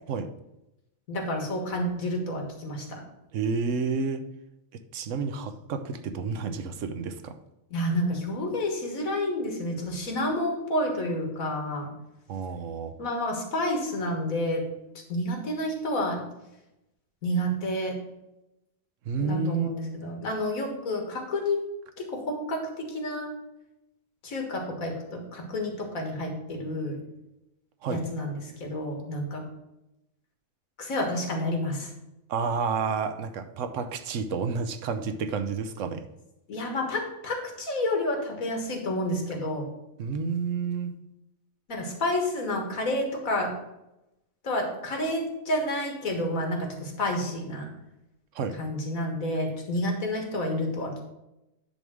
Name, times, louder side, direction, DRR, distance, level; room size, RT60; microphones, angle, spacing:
voice 1, 1.1-3.0 7.7-11.9 13.0-14.7 15.1-16.2 17.2-18.0 19.2-21.6 22.0-23.4 24.2-27.0 27.9-29.5 30.8-31.9 36.5-39.7 41.7-43.5 44.4-47.7 48.6-51.0, left 1 dB, 80° left, 2 dB, 2.0 m, -29 dB
voice 2, 3.3-4.2 4.9-7.3 12.3-12.9 19.1-19.7 27.8-28.0 32.3-36.0 40.0-40.9 48.3-48.6, right 5 dB, 70° right, 9 dB, 1.1 m, -30 dB
10.0 x 3.6 x 6.1 m, 0.91 s
omnidirectional pair, 1.4 m